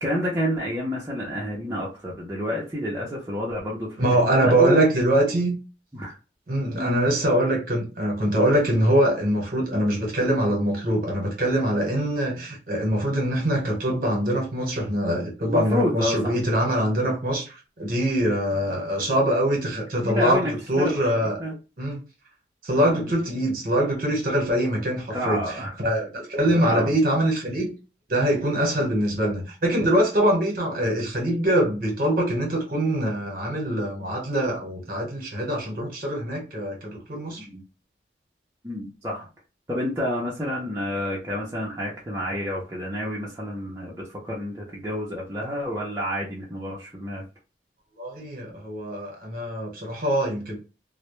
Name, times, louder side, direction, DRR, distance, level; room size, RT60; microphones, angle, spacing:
voice 1, 0.0-4.8 5.9-6.1 6.8-7.0 15.5-16.4 18.5-18.8 20.0-21.0 21.4-21.5 22.9-23.1 25.1-26.1 26.4-26.9 28.8-29.0 37.4-37.6 38.6-39.3 39.7-47.2, equal, 15° right, 0.5 m, -29 dB
voice 2, 4.0-5.6 6.5-17.5 17.8-21.4 21.8-22.0 22.6-25.4 25.8-27.7 28.1-37.4 48.0-50.6, right 1 dB, 50° right, 0.9 m, -23 dB
2.1 x 2.0 x 2.9 m
head